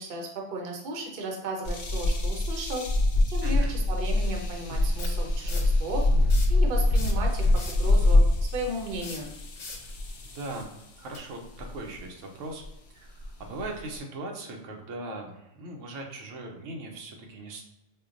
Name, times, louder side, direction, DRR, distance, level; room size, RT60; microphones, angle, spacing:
voice 1, 0.0-2.9 3.3-6.0 6.5-8.2 8.5-9.3, right 2 dB, 55° right, 1 dB, 0.8 m, -35 dB
sound 1, 1.7-10.8 11.6-12.0 12.6-12.7 13.2-14.0, left 2 dB, 60° left, 0.7 m, -25 dB
voice 2, 3.4-3.7 10.3-12.6 12.9-17.6, right 2 dB, 90° right, 2 dB, 1.0 m, -39 dB
sound 2, 3.5-3.6 5.0-5.8 6.2-6.6 6.9-7.9 8.9-9.9 11.1-11.2, left 3 dB, 90° left, 1.1 m, -40 dB
4.4 x 2.2 x 2.5 m, 0.89 s
omnidirectional pair, 1.2 m